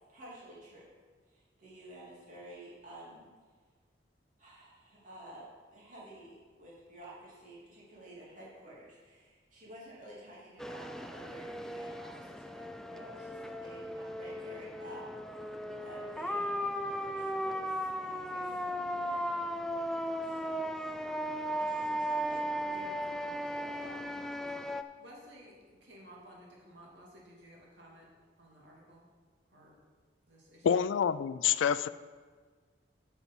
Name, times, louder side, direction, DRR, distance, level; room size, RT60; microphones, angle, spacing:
voice 1, 0.1-0.9 1.3-3.3 4.4-19.3 19.8-21.1 21.6-22.4 23.6-24.0, right 1 dB, 45° right, 3.1 m, -52 dB
sound 1, 10.6-24.8, equal, 5° left, 0.3 m, -36 dB
voice 2, 22.7-24.0 25.0-28.1 28.4-29.0 29.5-29.7 30.3-30.9, equal, 70° right, 2.4 m, -55 dB
voice 3, 30.6-31.9, left 7 dB, 90° left, 0.3 m, -27 dB
9.7 x 6.0 x 5.4 m
head